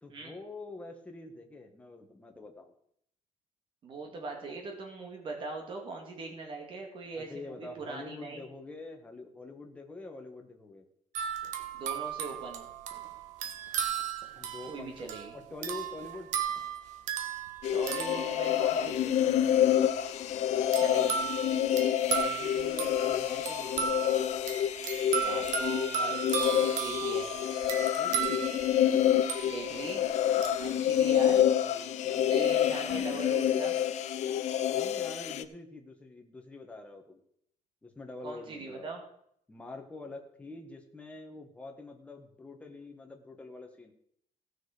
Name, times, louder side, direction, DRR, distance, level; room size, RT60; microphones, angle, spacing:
voice 1, 0.0-2.7 7.1-10.8 14.3-15.1 15.3-16.3 18.7-20.0 22.1-23.9 28.0-28.5 30.7-31.2 31.4-32.2 32.5-33.2 34.7-37.2 37.8-38.9 39.5-43.9, left 2 dB, 10° left, 2 dB, 1.4 m, -46 dB
voice 2, 3.8-8.4 11.7-12.7 14.7-15.4 17.7-19.0 20.8-21.2 25.2-27.3 29.4-30.1 30.6-31.4 32.3-33.8 38.2-39.0, right 3 dB, 40° right, 2 dB, 2.1 m, -40 dB
sound 1, 11.1-19.0 20.7-29.9 30.4-30.6, right 8 dB, 75° right, 1.5 m, -35 dB
sound 2, 17.6-35.4, left 10 dB, 65° left, 0.7 m, -28 dB
sound 3, 32.9-33.4, right 1 dB, 10° right, 1.5 m, -49 dB
16.5 x 6.4 x 5.0 m, 0.69 s
cardioid pair, 170°, 13 cm